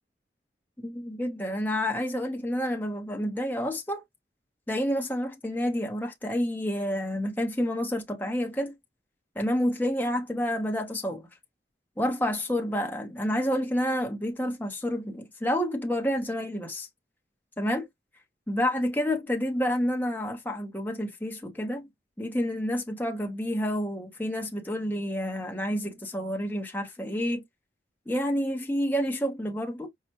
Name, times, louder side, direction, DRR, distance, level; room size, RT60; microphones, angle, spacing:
voice 1, 0.8-4.0 4.7-8.7 9.3-11.3 12.0-16.9 17.6-17.9 18.5-21.9 22.2-27.4 28.1-29.9, equal, 10° left, 1.0 m, -29 dB
5.7 x 2.4 x 3.0 m
head